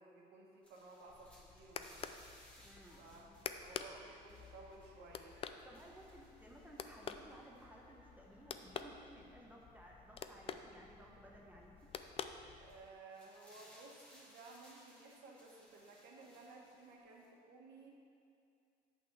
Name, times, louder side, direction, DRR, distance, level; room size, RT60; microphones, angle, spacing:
voice 1, 0.0-2.1 3.0-3.3 3.6-5.3 12.6-17.9, right 3 dB, 75° right, -2 dB, 1.2 m, -57 dB
sound 1, 0.6-7.7 9.2-9.3 11.8-12.1 12.6-17.3, equal, 5° left, 1.7 m, -65 dB
sound 2, 1.0-13.0, left 6 dB, 35° left, 0.4 m, -50 dB
voice 2, 2.6-3.4 5.6-11.9, right 1 dB, 10° right, -2 dB, 0.9 m, -58 dB
sound 3, 2.7-8.4, left 2 dB, 75° left, 1.4 m, -69 dB
8.1 x 4.0 x 6.6 m, 2.4 s
cardioid pair, 110°, 17 cm